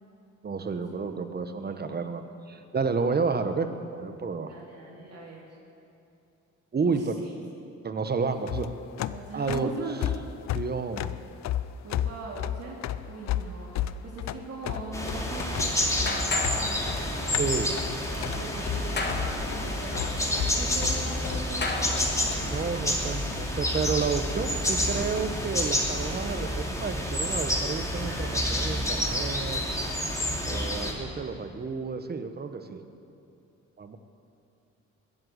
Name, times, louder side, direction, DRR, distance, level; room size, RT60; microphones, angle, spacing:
voice 1, 0.4-4.5 6.7-7.1 7.8-8.7 9.3-9.7 10.5-11.2 17.2-17.7 22.5-29.6 30.4-32.8 33.8-34.0, right 5 dB, 30° right, 8 dB, 1.2 m, -31 dB
voice 2, 4.5-5.5 6.8-6.9 9.1-10.2 11.8-12.8 13.1-17.6 18.1-22.2, right 3 dB, 55° right, -3 dB, 2.7 m, -40 dB
sound 1, 8.3-21.4, left 11 dB, 65° left, 0.6 m, -33 dB
sound 2, 14.9-30.9, left 1 dB, 10° left, 2.7 m, -29 dB
sound 3, 15.4-22.7, left 3 dB, 35° left, 1.9 m, -36 dB
21.5 x 7.9 x 8.1 m, 2.6 s
cardioid pair, 90°, 30 cm